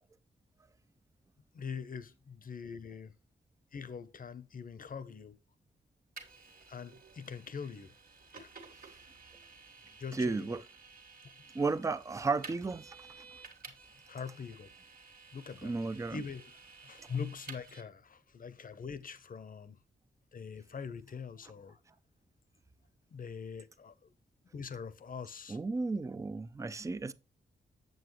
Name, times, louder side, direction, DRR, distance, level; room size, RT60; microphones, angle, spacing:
voice 1, 1.5-3.1 3.7-5.4 6.7-7.9 8.3-8.5 10.0-10.6 14.1-14.7 15.3-15.7 16.1-16.5 16.8-19.8 20.3-21.8 23.1-24.1 24.5-25.6, left 6 dB, 45° left, 0.7 m, -43 dB
Vehicle, 6.2-17.8, right 4 dB, 45° right, 1.7 m, -53 dB
voice 2, 10.1-10.6 11.5-13.3 15.6-16.2 25.5-27.1, right 3 dB, 15° right, 0.4 m, -34 dB
7.9 x 7.5 x 3.1 m
wide cardioid pair, 170°, 20 cm